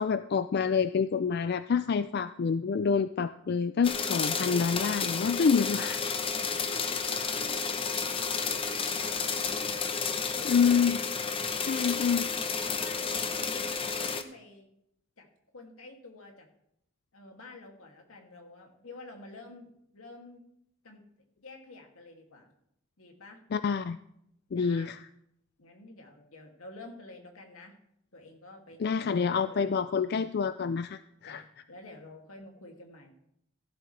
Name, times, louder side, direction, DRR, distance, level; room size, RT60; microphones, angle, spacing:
voice 1, 0.0-6.0 10.4-11.0 11.7-12.3 23.5-24.0 24.5-25.0 28.8-31.4, left 6 dB, 50° left, 12 dB, 0.3 m, -27 dB
sound 1, 3.8-14.2, left 5 dB, 25° left, 0.8 m, -31 dB
voice 2, 5.9-9.4 10.2-10.8 12.6-14.7 15.2-15.3 15.5-16.5 17.1-20.4 20.8-21.0 21.4-22.5 23.0-23.4 24.5-25.0 25.6-27.7 28.1-29.9 31.2-33.1, left 2 dB, 85° left, 2 dB, 2.5 m, -50 dB
16.0 x 11.5 x 3.3 m, 0.74 s
head